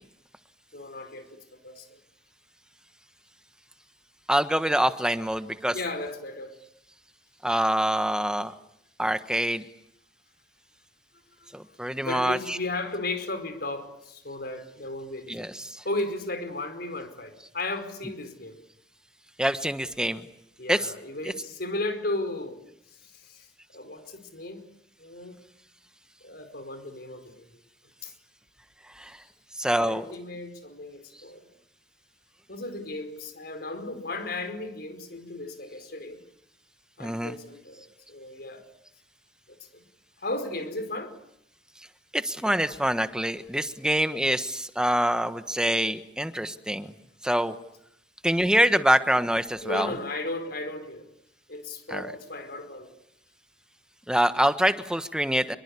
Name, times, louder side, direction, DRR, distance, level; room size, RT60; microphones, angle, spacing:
voice 1, 0.7-2.0 5.7-6.5 11.5-11.7 12.0-15.5 15.8-18.6 20.6-22.6 23.1-23.5 23.7-24.6 25.0-25.4 26.2-27.4 28.0-28.1 29.8-31.5 32.5-36.2 37.0-37.8 38.1-38.7 39.7-39.8 40.2-41.1 48.7-48.9 49.6-51.1 51.5-52.9, left 2 dB, 60° left, 8 dB, 4.9 m, -35 dB
voice 2, 4.3-5.7 7.4-8.5 9.0-9.6 11.5-12.6 15.3-15.5 19.4-20.2 20.7-20.8 29.0-29.1 29.6-30.1 37.0-37.4 42.1-46.9 47.2-47.6 48.2-49.9 51.9-52.0 54.1-55.5, right 1 dB, 5° right, 10 dB, 1.3 m, -25 dB
27.5 x 23.0 x 8.5 m, 0.75 s
head